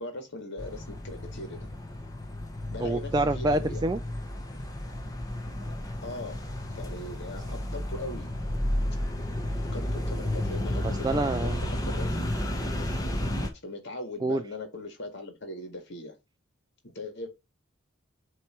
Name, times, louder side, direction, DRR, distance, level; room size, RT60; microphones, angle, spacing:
voice 1, 0.0-1.7 2.7-3.9 5.4-5.5 6.0-6.4 6.7-8.3 9.5-12.3 13.6-16.2 16.8-17.3, left 2 dB, 55° left, 2.1 m, -40 dB
sound 1, 0.6-13.5, left 1 dB, 15° left, 1.1 m, -32 dB
voice 2, 2.8-4.0 11.0-11.6 14.2-14.4, right 2 dB, 20° right, 0.3 m, -26 dB
8.4 x 3.2 x 4.4 m
head